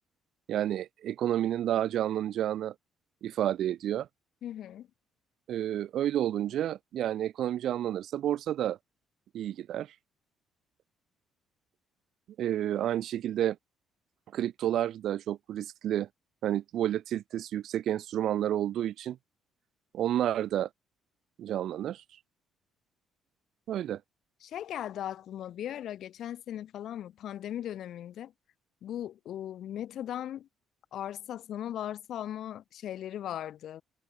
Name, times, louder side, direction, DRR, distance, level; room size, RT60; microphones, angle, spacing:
voice 1, 0.5-2.7 3.2-4.1 5.5-8.8 9.3-9.9 12.4-13.6 14.3-16.1 16.4-19.2 19.9-20.7 21.4-22.0 23.7-24.0, right 11 dB, 55° right, 1.9 m, -30 dB
voice 2, 4.4-4.9 24.4-28.3 28.8-30.5 30.9-33.8, left 11 dB, 55° left, 2.0 m, -38 dB
cardioid pair, 170°, 0 cm